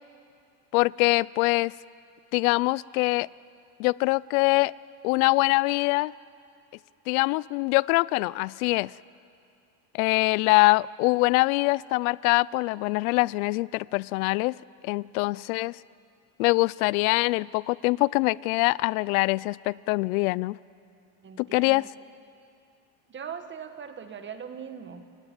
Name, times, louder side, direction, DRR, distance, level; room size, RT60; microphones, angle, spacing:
voice 1, 0.7-1.7 2.3-3.3 3.8-4.7 5.0-6.1 7.1-8.9 9.9-14.6 14.8-15.8 16.4-20.6 21.4-21.9, left 23 dB, 90° left, 22 dB, 0.5 m, -24 dB
voice 2, 21.2-21.9 23.1-25.1, right 7 dB, 25° right, 8 dB, 1.7 m, -40 dB
28.5 x 17.0 x 9.1 m, 2.4 s
cardioid pair, 135°, 41 cm